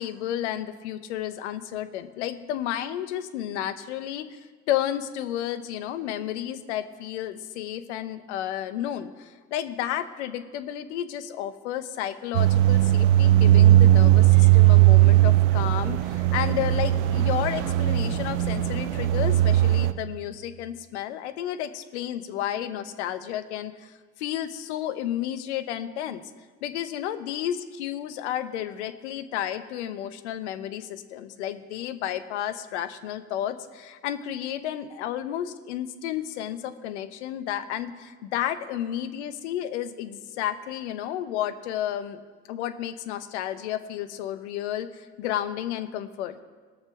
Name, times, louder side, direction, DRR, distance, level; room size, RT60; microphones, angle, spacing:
voice 1, 0.0-26.2 26.6-42.2 42.5-46.4, left 11 dB, 80° left, 11 dB, 0.9 m, -32 dB
sound 1, 12.3-19.9, right 14 dB, 80° right, 0.7 m, -18 dB
19.0 x 6.8 x 5.9 m, 1.4 s
hypercardioid pair, 65°, 34 cm